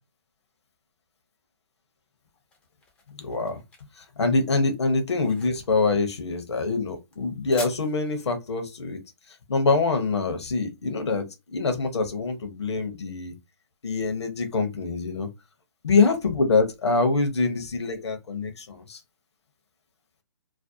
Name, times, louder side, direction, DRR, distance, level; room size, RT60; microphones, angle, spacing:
sound 1, 2.0-11.0, left 3 dB, 5° left, 0.4 m, -47 dB
voice 1, 3.2-3.6 4.0-9.0 9.5-13.3 13.8-15.3 15.8-19.0, left 3 dB, 75° left, 0.7 m, -25 dB
2.5 x 2.0 x 2.6 m
hypercardioid pair, 145°, 14 cm